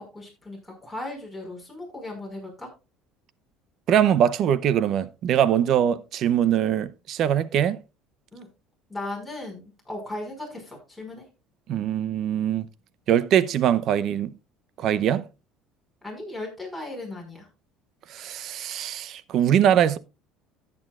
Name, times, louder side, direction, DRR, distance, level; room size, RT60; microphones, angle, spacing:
voice 1, 0.0-2.7 8.3-8.5 8.9-11.2 16.0-17.5, left 2 dB, ahead, 5.0 m, -37 dB
voice 2, 3.9-7.8 11.7-12.7 13.1-14.3 14.8-15.3 18.1-20.0, right 10 dB, 55° right, 0.7 m, -22 dB
14.0 x 8.6 x 2.4 m
cardioid pair, 125°, 0 cm